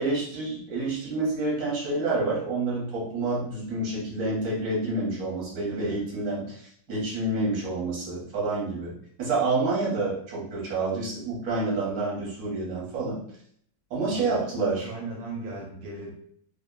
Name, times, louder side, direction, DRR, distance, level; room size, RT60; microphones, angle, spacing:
voice 1, 0.0-13.2 13.9-14.9, right 3 dB, 55° right, -5 dB, 1.3 m, -28 dB
voice 2, 5.7-6.0 14.1-14.5 14.8-16.1, right 2 dB, 80° right, -2 dB, 1.3 m, -38 dB
3.1 x 2.1 x 2.2 m, 0.65 s
omnidirectional pair, 2.1 m